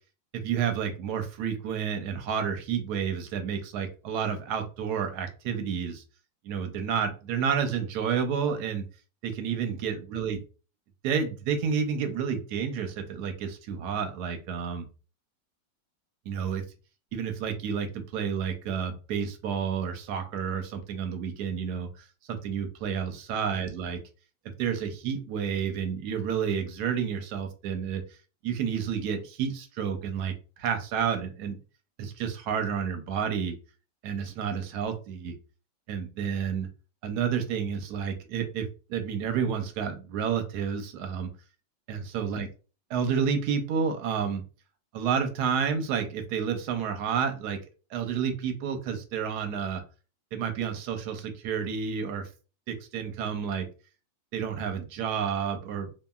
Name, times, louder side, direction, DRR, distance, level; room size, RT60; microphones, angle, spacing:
voice 1, 0.3-6.0 6.4-8.8 9.2-10.4 11.0-14.8 16.3-16.6 17.1-24.0 24.6-28.0 28.4-30.3 30.6-31.6 32.0-33.6 34.0-35.3 35.9-36.7 37.0-41.3 41.9-42.5 42.9-44.4 44.9-47.6 47.9-49.8 50.3-52.3 52.7-53.7 54.3-55.9, right 7 dB, 75° right, 7 dB, 1.0 m, -30 dB
2.8 x 2.5 x 2.2 m, 0.35 s
omnidirectional pair, 1.9 m